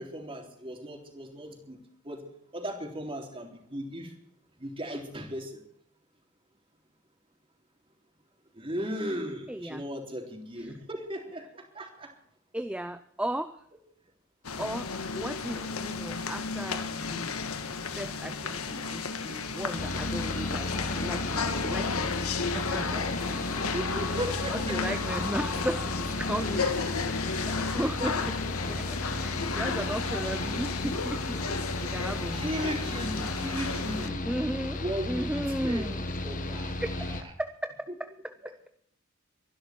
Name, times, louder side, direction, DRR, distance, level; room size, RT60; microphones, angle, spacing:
voice 1, 0.0-1.8 2.0-2.2 2.5-4.1 4.6-5.6 8.5-12.1 15.5-15.6 23.5-25.0 26.6-26.7 27.4-28.1 29.8-29.9 31.5-31.6 32.3-34.2 34.8-35.9 36.2-36.7, equal, 25° right, 2 dB, 3.7 m, -37 dB
voice 2, 9.5-9.8 10.6-10.8 12.5-13.6 14.6-17.4 17.9-23.6 24.1-26.7 27.2-28.2 28.7-31.2 31.8-32.6 34.2-36.0 36.8-37.1 37.4-38.7, right 1 dB, 5° right, 9 dB, 0.6 m, -36 dB
Galleria atmosphere, 14.4-34.1, left 4 dB, 85° left, 1.6 m, -33 dB
Mechanical fan, 19.8-37.2, left 1 dB, 40° left, 1.7 m, -35 dB
23.5 x 11.5 x 4.6 m, 0.68 s
head